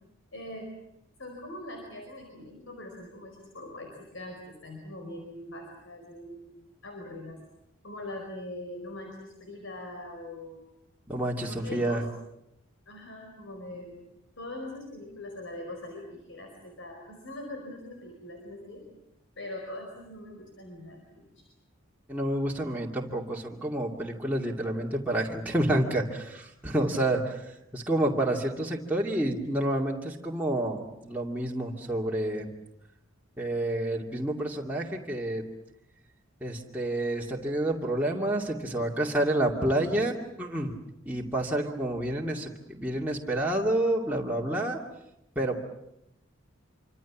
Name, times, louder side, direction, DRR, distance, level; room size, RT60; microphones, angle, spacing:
voice 1, 0.3-0.8 1.2-7.4 7.8-10.6 11.5-12.1 12.9-14.0 14.4-18.9 19.4-21.4, left 1 dB, 65° left, 2 dB, 5.0 m, -42 dB
voice 2, 11.1-12.0 22.1-32.5 33.4-35.4 36.4-40.7 41.1-44.8 45.4-45.6, right 1 dB, 10° right, -3 dB, 2.5 m, -29 dB
27.0 x 25.5 x 7.4 m, 0.83 s
head